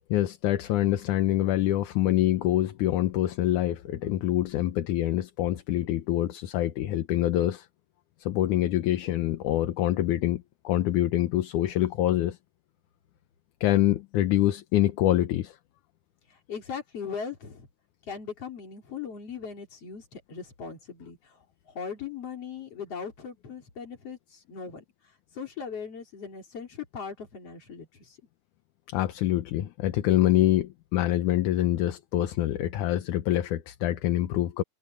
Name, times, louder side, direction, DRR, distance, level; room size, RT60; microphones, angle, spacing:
voice 1, 0.1-7.7 8.2-12.4 13.6-15.6 28.9-34.6, left 13 dB, 70° left, 2.3 m, -25 dB
voice 2, 16.5-17.7 18.0-21.2 21.7-24.8 25.3-28.2, left 6 dB, 45° left, 4.5 m, -39 dB
omnidirectional pair, 4.0 m